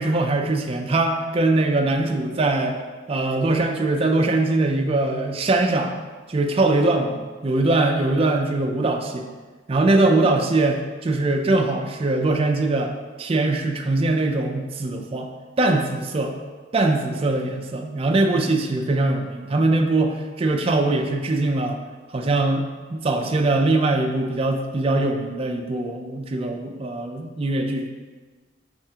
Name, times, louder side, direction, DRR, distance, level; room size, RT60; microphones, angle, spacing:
voice 1, 0.0-2.8 3.1-5.9 6.3-9.3 9.7-15.3 15.6-16.4 16.7-21.8 22.1-27.9, right 2 dB, 30° right, 3 dB, 0.4 m, -22 dB
5.5 x 3.5 x 2.8 m, 1.4 s
head